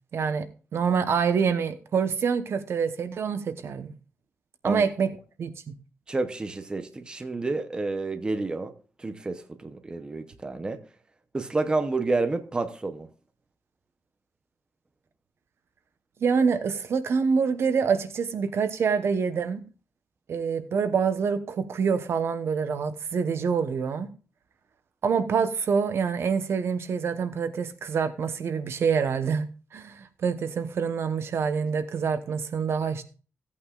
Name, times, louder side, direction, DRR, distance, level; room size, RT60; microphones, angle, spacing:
voice 1, 0.1-0.5 0.7-3.9 4.6-5.1 5.4-5.7 16.2-19.6 20.3-24.1 25.0-33.0, right 6 dB, 55° right, 0.9 m, -26 dB
voice 2, 6.1-8.7 9.0-10.8 11.3-13.1, right 3 dB, 15° right, 0.7 m, -29 dB
16.0 x 8.5 x 2.4 m
wide cardioid pair, 165°, 5 cm